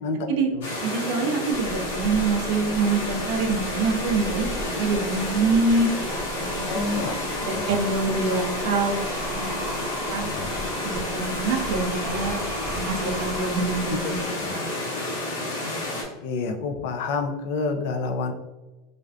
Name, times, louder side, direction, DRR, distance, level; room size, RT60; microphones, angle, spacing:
sound 1, 0.6-16.0, left 2 dB, 90° left, 0.8 m, -30 dB
voice 1, 0.8-6.1 6.3-9.0 9.2-9.5 10.1-14.2 14.5-14.7, right 3 dB, 70° right, 4 dB, 0.4 m, -26 dB
sound 2, 1.5-14.5, right 1 dB, 20° right, 0.6 m, -37 dB
voice 2, 6.6-7.8 10.1-10.5 14.4-14.6 16.2-18.3, left 4 dB, 75° left, 5 dB, 0.3 m, -29 dB
2.4 x 2.2 x 2.3 m, 1.1 s
supercardioid pair, 125°, 0 cm